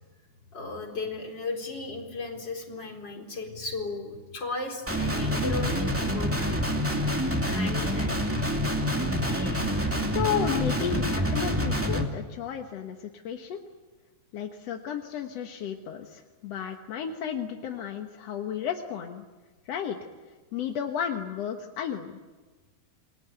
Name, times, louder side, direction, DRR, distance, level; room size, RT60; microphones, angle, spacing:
voice 1, 0.5-6.6 7.4-8.2 9.2-9.7, left 3 dB, 30° left, 2 dB, 4.5 m, -36 dB
Guitar, 4.9-12.0, equal, 5° right, 1.5 m, -27 dB
voice 2, 10.1-13.6 14.3-19.3 19.7-20.0 20.5-22.2, left 8 dB, 60° left, 4 dB, 1.8 m, -33 dB
28.5 x 21.0 x 9.2 m, 1.3 s
omnidirectional pair, 4.4 m